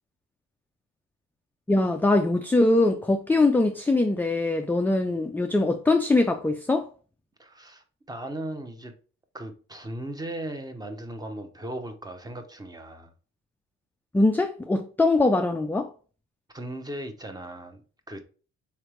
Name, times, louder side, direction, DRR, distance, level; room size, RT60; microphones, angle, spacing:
voice 1, 1.7-6.9 14.1-15.9, left 2 dB, 5° left, 0.3 m, -22 dB
voice 2, 7.4-8.9 9.3-13.1 16.5-18.2, right 1 dB, 15° right, 0.8 m, -37 dB
3.9 x 3.3 x 3.1 m
cardioid pair, 90°, 30 cm